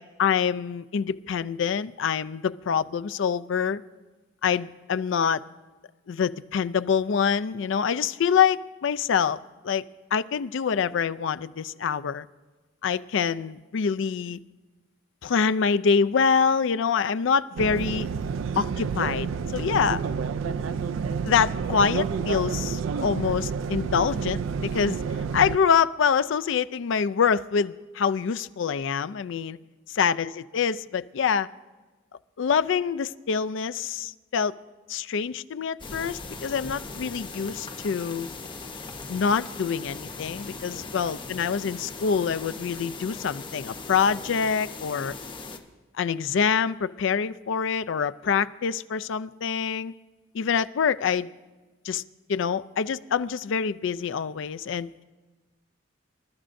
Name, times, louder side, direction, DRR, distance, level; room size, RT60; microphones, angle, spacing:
voice 1, 0.2-3.8 4.4-5.4 6.1-9.4 9.6-9.8 10.1-12.3 12.8-14.4 15.2-18.1 18.6-20.0 21.2-25.0 25.3-29.6 30.0-31.5 32.4-34.5 34.9-38.3 39.1-45.1 46.0-49.9 50.3-51.3 51.8-52.0 52.3-54.9, left 6 dB, 70° left, 14 dB, 0.4 m, -25 dB
sound 1, 17.6-25.6, right 6 dB, 70° right, 0.4 m, -29 dB
sound 2, 35.8-45.6, left 3 dB, 25° left, 0.8 m, -39 dB
26.5 x 12.5 x 2.6 m, 1.2 s
head